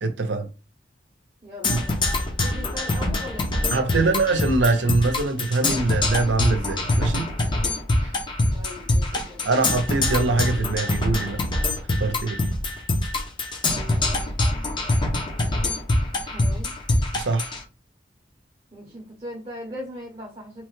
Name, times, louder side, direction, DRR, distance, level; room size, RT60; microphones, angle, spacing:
voice 1, 0.0-0.5 1.7-1.8 3.7-7.3 8.0-8.1 9.1-11.4 12.0-12.4 17.1-17.5, right 3 dB, 90° right, 0.6 m, -23 dB
voice 2, 1.4-2.0 2.4-4.2 8.5-9.5 13.6-14.6 16.2-16.7 18.7-20.7, equal, 30° right, 0.6 m, -39 dB
Percussion, 1.6-17.6, left 2 dB, 25° left, 0.5 m, -24 dB
3.0 x 2.1 x 3.1 m
head